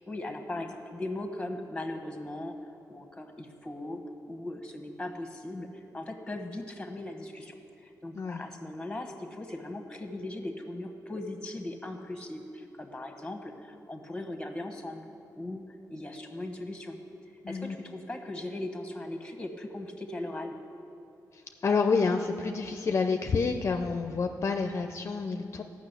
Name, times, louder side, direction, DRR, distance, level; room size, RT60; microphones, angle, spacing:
voice 1, 0.1-2.6 2.9-4.0 4.3-15.1 15.3-15.6 15.9-17.0 17.5-20.5, left 1 dB, 10° left, 4 dB, 1.3 m, -38 dB
voice 2, 17.4-17.7 21.3-25.6, left 4 dB, 40° left, 6 dB, 0.5 m, -28 dB
14.0 x 6.1 x 8.3 m, 2.7 s
wide cardioid pair, 105°, 7 cm